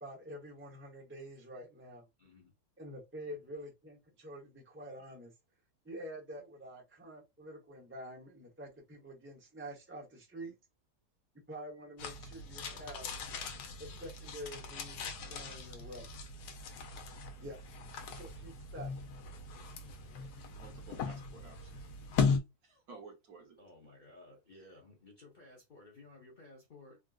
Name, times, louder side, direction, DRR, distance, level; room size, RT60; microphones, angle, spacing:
voice 1, 0.0-2.1 2.8-5.3 5.8-10.5 11.5-13.1 13.8-16.1 17.4-17.6 18.2-18.9, right 1 dB, 15° right, 0.4 m, -47 dB
voice 2, 2.2-2.5 23.6-27.0, left 2 dB, 45° left, 0.7 m, -56 dB
sound 1, 12.0-22.4, left 5 dB, 80° left, 1.1 m, -38 dB
voice 3, 20.2-23.6 24.6-24.7, right 4 dB, 65° right, 1.5 m, -55 dB
3.6 x 2.4 x 2.3 m
omnidirectional pair, 1.7 m